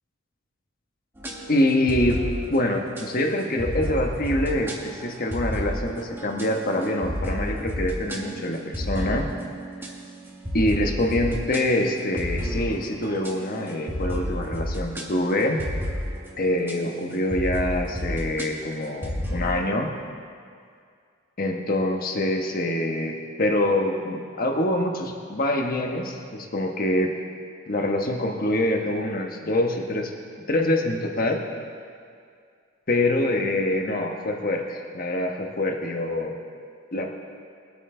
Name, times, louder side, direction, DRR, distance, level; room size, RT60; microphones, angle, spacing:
sound 1, 1.2-16.7 17.3-19.6, equal, 10° right, 1.4 m, -32 dB
voice 1, 1.5-9.3 10.5-15.6 16.4-19.9 21.4-27.1 27.7-30.1 30.5-31.4 32.9-36.3 36.9-37.1, left 1 dB, 45° left, 2 dB, 1.2 m, -25 dB
22.0 x 8.6 x 3.8 m, 2.2 s
head